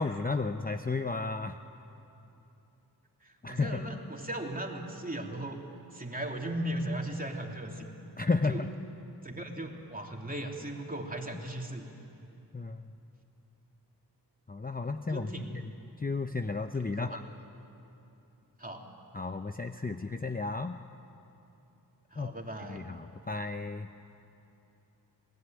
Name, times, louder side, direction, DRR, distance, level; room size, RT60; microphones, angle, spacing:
voice 1, 0.0-1.6 3.4-4.0 8.2-8.7 12.5-12.9 14.5-15.7 16.0-17.2 19.1-20.8 22.2-23.9, left 3 dB, 20° left, 7 dB, 0.7 m, -33 dB
voice 2, 3.2-5.6 5.9-7.9 8.5-8.6 9.2-11.9 15.1-15.6 16.8-17.2 18.6-18.8 22.1-22.8, right 1 dB, 20° right, 1 dB, 3.2 m, -37 dB
28.0 x 19.5 x 9.2 m, 2.8 s
wide cardioid pair, 65°, 40 cm